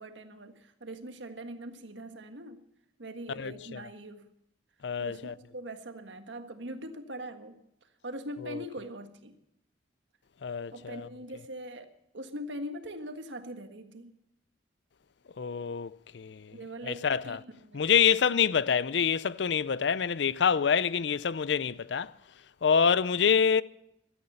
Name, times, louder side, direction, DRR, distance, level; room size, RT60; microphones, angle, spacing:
voice 1, 0.0-2.6 3.0-4.3 5.0-7.6 8.0-9.4 10.7-14.1 16.5-18.2, right 1 dB, 85° right, 1.6 m, -42 dB
voice 2, 3.3-3.8 4.8-5.3 8.5-8.6 10.4-11.1 15.4-16.5 16.8-17.4 17.7-22.1 22.6-23.6, left 7 dB, 70° left, 0.5 m, -26 dB
16.0 x 13.0 x 5.6 m
head